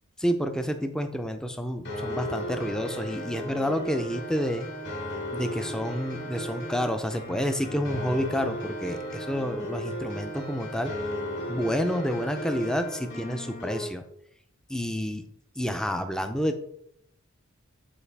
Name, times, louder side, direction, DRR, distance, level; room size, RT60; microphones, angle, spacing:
voice 1, 0.2-4.7 5.3-10.9 11.5-14.0 14.7-15.2 15.6-16.6, equal, 5° left, 7 dB, 0.4 m, -29 dB
sound 1, 1.9-13.9, equal, 50° left, 2.2 m, -35 dB
7.2 x 4.5 x 3.4 m, 0.75 s
head